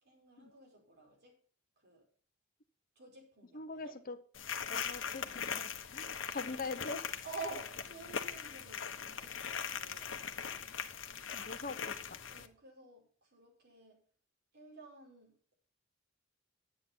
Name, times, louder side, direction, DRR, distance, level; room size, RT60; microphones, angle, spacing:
voice 1, 0.0-1.4 1.8-2.0 2.9-4.0 7.2-10.4 12.3-14.0 14.5-15.6, right 3 dB, 55° right, 4.9 m, -50 dB
voice 2, 3.5-4.2 4.6-7.1 11.3-12.2, left 3 dB, 50° left, 1.1 m, -43 dB
sound 1, 4.3-12.5, left 7 dB, 85° left, 1.2 m, -41 dB
11.0 x 8.5 x 5.7 m
head